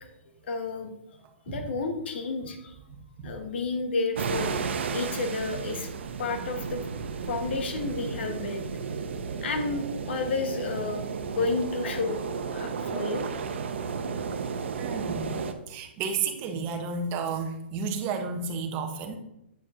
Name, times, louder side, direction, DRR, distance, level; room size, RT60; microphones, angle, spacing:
voice 1, 0.4-0.9 1.5-2.7 3.2-5.9 6.2-6.8 7.2-8.7 9.4-11.1 11.3-12.2 12.5-13.3, left 3 dB, 65° left, 5 dB, 1.4 m, -31 dB
sound 1, 4.2-15.5, right 5 dB, 70° right, 0.8 m, -33 dB
voice 2, 14.8-15.4 15.7-19.2, right 5 dB, 30° right, 5 dB, 0.9 m, -32 dB
8.5 x 4.7 x 3.7 m, 0.83 s
hypercardioid pair, 150°, 6 cm